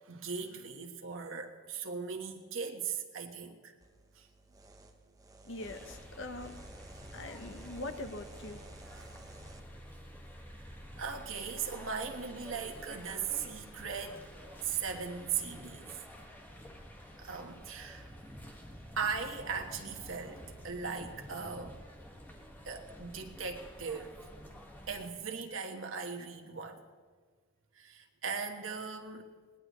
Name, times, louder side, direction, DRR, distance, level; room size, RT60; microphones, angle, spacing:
voice 1, 0.1-3.7 4.2-4.3 9.0-9.1 11.0-14.2 14.6-15.9 17.2-18.1 19.0-21.8 22.6-24.1 24.9-26.8 27.8-29.2, right 6 dB, 85° right, 3 dB, 1.5 m, -38 dB
sound 1, 3.8-9.6, right 2 dB, 20° right, 1.0 m, -54 dB
voice 2, 5.4-6.6 7.1-8.6, left 2 dB, 65° left, 7 dB, 1.1 m, -42 dB
sound 2, 5.6-25.1, equal, 10° left, 1.7 m, -50 dB
21.0 x 19.0 x 3.2 m, 1.5 s
head